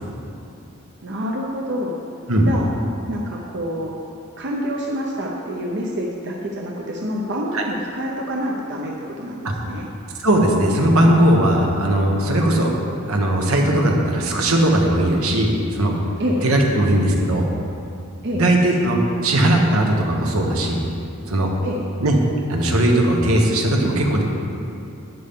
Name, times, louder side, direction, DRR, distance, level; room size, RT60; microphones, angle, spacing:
voice 1, 1.0-1.9 2.5-2.7 3.1-3.9 4.4-9.9 16.2-16.4 18.2-18.4 21.6-21.8, equal, 55° right, -2 dB, 0.8 m, -27 dB
voice 2, 10.2-12.7 13.1-15.9 16.4-17.4 18.3-20.8 21.2-21.5 22.0-22.2 22.5-24.2, right 1 dB, 85° right, 0 dB, 1.4 m, -18 dB
11.0 x 9.5 x 3.8 m, 2.6 s
head